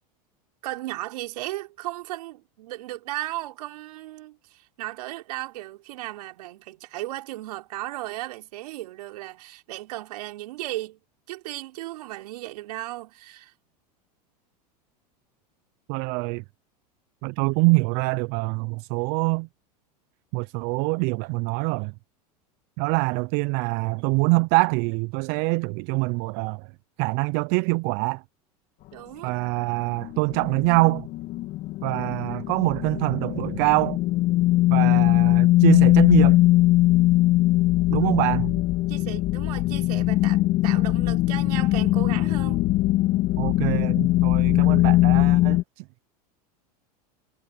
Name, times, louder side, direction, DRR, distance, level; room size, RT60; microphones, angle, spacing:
voice 1, 0.6-11.0 11.3-13.5 28.9-29.3 38.0-38.5 38.9-42.6, right 17 dB, 75° right, 4.9 m, -36 dB
voice 2, 15.9-16.4 17.2-19.5 20.3-21.9 22.8-26.7 27.0-28.2 29.2-31.1 31.8-34.0 34.7-36.4 37.9-38.5 43.4-45.8, right 29 dB, 55° right, 0.7 m, -24 dB
sound 1, 30.0-45.6, left 17 dB, 50° left, 2.6 m, -21 dB
hypercardioid pair, 100°, 20 cm